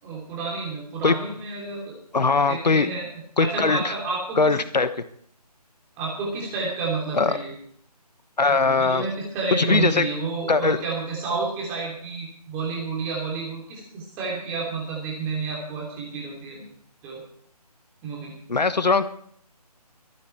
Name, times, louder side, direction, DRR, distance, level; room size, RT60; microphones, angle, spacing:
voice 1, 0.0-2.0 2.5-3.1 3.4-4.5 6.0-7.5 8.5-16.7 17.0-17.2 18.0-18.3, right 4 dB, 10° right, -3 dB, 3.0 m, -30 dB
voice 2, 2.1-2.9 3.4-3.9 4.4-4.9 7.1-7.4 8.4-9.0 9.5-10.1 10.5-10.8 18.5-19.1, left 4 dB, 85° left, 12 dB, 1.2 m, -20 dB
23.5 x 8.8 x 4.5 m, 0.66 s
figure-of-eight pair, 165°, 21 cm